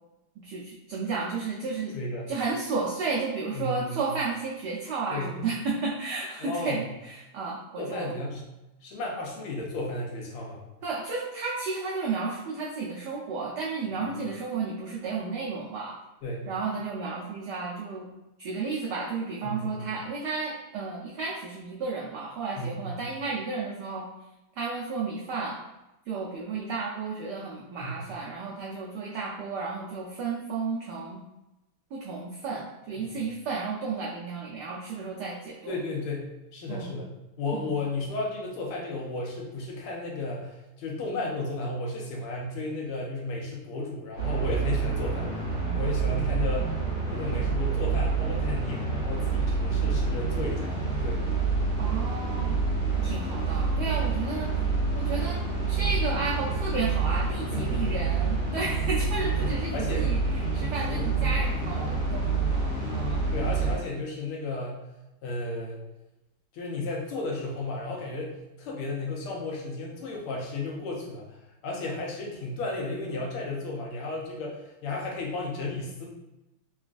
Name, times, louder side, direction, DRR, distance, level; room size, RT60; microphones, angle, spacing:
voice 1, 0.4-1.9 2.3-8.1 10.8-16.0 16.5-18.1 18.4-24.1 24.5-25.6 26.1-31.2 31.9-35.8 36.7-37.0 37.5-37.7 51.8-52.6 53.0-54.5 54.9-55.4 55.7-63.3, right 4 dB, 85° right, -4 dB, 0.9 m, -33 dB
voice 2, 1.9-2.3 3.5-4.0 5.1-5.5 6.4-6.8 7.8-8.4 8.8-10.6 14.0-14.1 16.2-16.5 19.4-19.8 22.6-23.0 27.8-28.0 33.0-33.1 35.7-37.1 37.4-45.5 45.7-46.8 47.1-50.8 51.0-51.3 51.8-52.0 57.5-58.0 59.4-60.1 60.9-61.1 63.3-64.8 65.2-65.8 66.5-71.4 71.6-76.1, left 2 dB, 85° left, -2 dB, 1.7 m, -34 dB
sound 1, 44.2-63.8, right 4 dB, 70° left, 1.7 m, -27 dB
3.9 x 2.3 x 2.5 m, 0.97 s
omnidirectional pair, 2.4 m